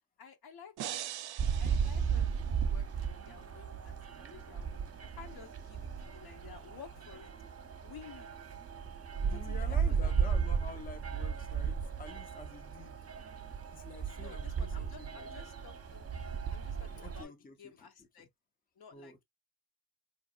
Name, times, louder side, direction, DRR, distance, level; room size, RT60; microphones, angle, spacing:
voice 1, 0.2-1.1 1.6-7.3 7.8-8.3 9.3-10.5 14.2-16.1 16.5-17.3 17.6-18.3 18.8-19.1, left 7 dB, 65° left, 1.0 m, -53 dB
sound 1, 0.8-2.9, right 12 dB, 70° right, 0.5 m, -43 dB
sound 2, 1.4-17.2, right 6 dB, 35° right, 0.7 m, -35 dB
voice 2, 9.2-13.0 13.7-15.3 17.0-18.3 18.9-19.2, left 4 dB, 20° left, 0.6 m, -49 dB
4.0 x 2.9 x 2.4 m
wide cardioid pair, 115°, 41 cm